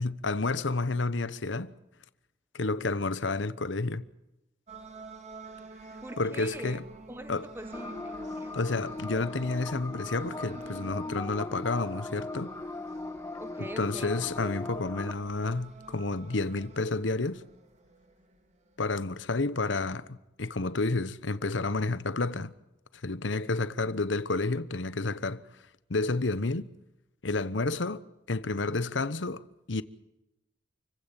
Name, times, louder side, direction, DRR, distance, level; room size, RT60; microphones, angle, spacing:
voice 1, 0.0-1.7 2.5-4.0 6.2-6.9 7.3-7.5 8.5-12.5 13.6-17.4 18.8-22.5 23.0-25.4 25.9-26.7 27.2-28.0 28.3-29.8, left 3 dB, 75° left, 1.0 m, -30 dB
sound 1, 4.7-18.8, right 2 dB, 40° right, 2.4 m, -48 dB
voice 2, 6.0-6.8 7.1-8.5 13.4-14.1, right 1 dB, 10° right, 1.1 m, -43 dB
sound 2, 7.7-15.1, left 2 dB, 15° left, 0.8 m, -39 dB
28.5 x 16.0 x 7.5 m
head